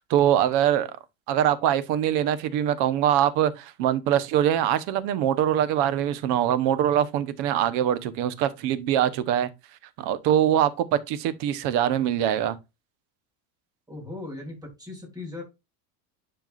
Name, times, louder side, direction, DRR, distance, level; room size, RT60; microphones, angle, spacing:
voice 1, 0.1-0.9 1.3-9.5 10.0-12.6, right 10 dB, 60° right, 1.1 m, -23 dB
voice 2, 13.9-15.4, left 2 dB, 10° right, 3.3 m, -38 dB
10.5 x 4.7 x 2.5 m
cardioid pair, 170°, 45 cm